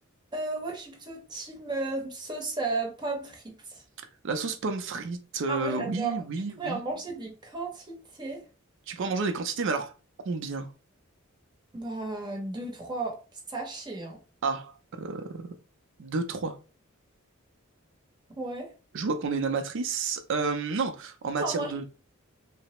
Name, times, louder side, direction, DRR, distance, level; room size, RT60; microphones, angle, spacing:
voice 1, 0.3-3.8 5.5-6.2 6.6-8.4 11.7-13.2 13.5-14.2 18.4-18.7 21.4-21.8, right 3 dB, 20° right, 0.7 m, -34 dB
voice 2, 4.2-6.8 8.9-9.9 10.3-10.7 14.4-15.5 16.0-16.6 18.9-21.8, right 4 dB, 65° right, 0.5 m, -30 dB
3.2 x 2.0 x 2.9 m
head